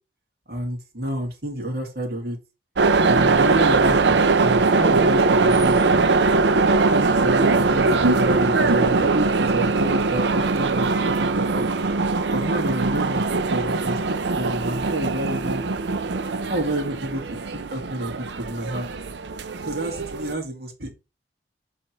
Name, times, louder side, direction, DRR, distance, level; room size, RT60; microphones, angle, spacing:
voice 1, 0.5-2.4 3.1-6.0 6.8-11.7 12.3-15.6 16.5-17.2 17.7-18.9 19.7-20.9, right 1 dB, 60° right, 1 dB, 2.2 m, -29 dB
sound 1, 2.8-20.3, right 3 dB, 75° right, 0.6 m, -21 dB
7.7 x 3.5 x 4.5 m, 0.28 s
head